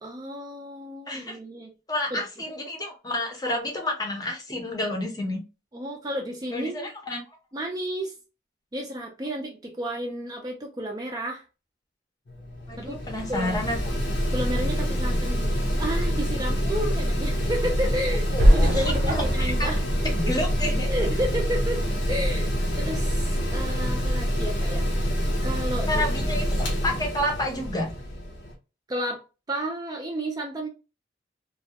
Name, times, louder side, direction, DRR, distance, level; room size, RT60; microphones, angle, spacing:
voice 1, 0.0-1.7 2.1-2.2 5.7-6.9 7.5-8.1 8.7-11.4 12.8-13.0 13.3-13.6 14.3-20.3 20.9-26.1 28.9-30.7, right 1 dB, 20° right, 0.3 m, -32 dB
voice 2, 1.1-1.4 1.9-5.4 6.5-7.2 12.7-13.8 18.3-19.7 20.0-20.9 25.9-27.9, left 1 dB, 20° left, 0.6 m, -29 dB
Mechanical fan, 12.3-28.6, equal, 80° left, 0.7 m, -26 dB
sound 1, 18.4-21.4, equal, 75° right, 0.5 m, -23 dB
2.3 x 2.1 x 2.6 m
head